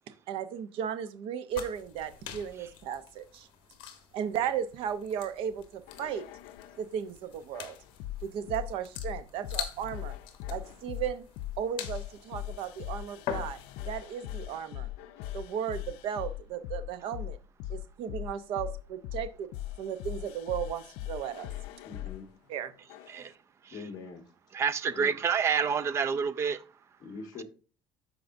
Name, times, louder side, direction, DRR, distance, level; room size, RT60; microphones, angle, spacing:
voice 1, 0.3-3.5 4.1-6.3 6.8-7.8 8.2-10.1 10.5-11.2 11.6-14.9 15.3-17.4 17.7-19.5 19.8-21.5 22.5-22.7, right 9 dB, 60° right, 0.7 m, -35 dB
sound 1, 1.5-13.9, left 9 dB, 55° left, 1.2 m, -44 dB
sound 2, 5.9-6.9 7.5-22.2 22.9-23.3, left 14 dB, 90° left, 0.5 m, -40 dB
voice 2, 21.8-22.3 23.7-24.3 24.9-25.3 27.0-27.4, left 4 dB, 40° left, 1.4 m, -43 dB
voice 3, 24.5-26.6, right 6 dB, 25° right, 0.4 m, -28 dB
13.0 x 4.7 x 2.6 m
cardioid pair, 165°, 10 cm